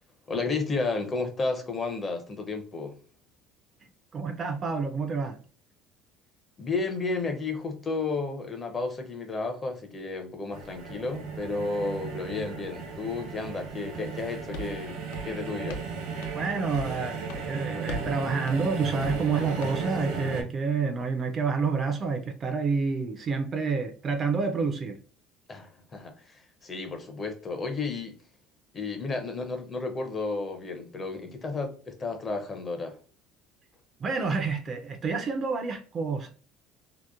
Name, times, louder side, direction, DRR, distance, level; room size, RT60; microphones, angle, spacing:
voice 1, 0.3-3.0 6.6-15.8 25.5-28.2 28.7-33.0, left 3 dB, 25° left, 0.5 m, -32 dB
voice 2, 4.1-5.4 16.3-25.0 34.0-36.3, right 4 dB, 30° right, 0.4 m, -28 dB
sound 1, 10.5-20.4, right 5 dB, 70° right, 0.8 m, -35 dB
Footsteps Office, 14.2-14.3 14.5-14.8 15.1-15.9 16.2-16.4 16.7-17.0 17.3-17.5 17.9-18.1 18.5-18.7 19.0-19.3 19.6-19.8, equal, 80° left, 0.4 m, -39 dB
2.8 x 2.1 x 2.3 m
cardioid pair, 145°, 0 cm